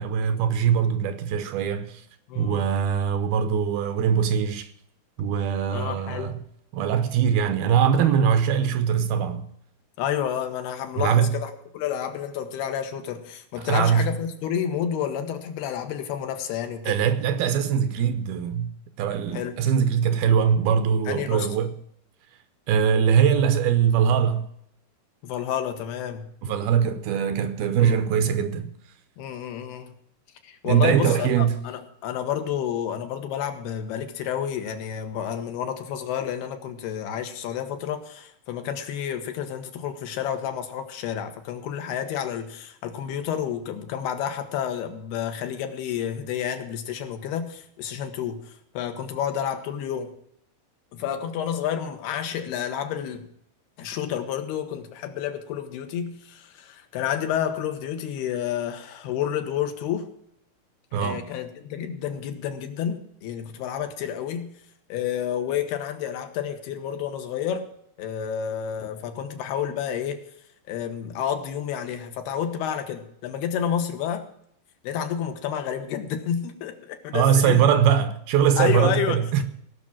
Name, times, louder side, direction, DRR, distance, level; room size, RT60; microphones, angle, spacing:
voice 1, 0.0-2.0 2.4-4.7 5.2-6.3 6.7-9.5 11.0-11.4 13.6-14.1 16.9-18.7 19.0-21.7 22.7-24.5 26.4-28.7 30.7-31.6 60.9-61.3 77.1-79.4, right 8 dB, 75° right, 2.5 m, -22 dB
voice 2, 2.3-2.7 5.7-6.3 8.0-8.3 10.0-17.0 19.3-19.6 21.1-21.6 25.2-26.3 27.8-28.0 29.2-29.9 30.4-50.1 50.9-53.3 53.8-60.1 60.9-64.6 64.9-67.7 68.0-70.2 70.7-74.3 74.8-77.7 78.6-79.4, left 9 dB, 75° left, 3.2 m, -30 dB
18.0 x 6.2 x 7.3 m
omnidirectional pair, 4.8 m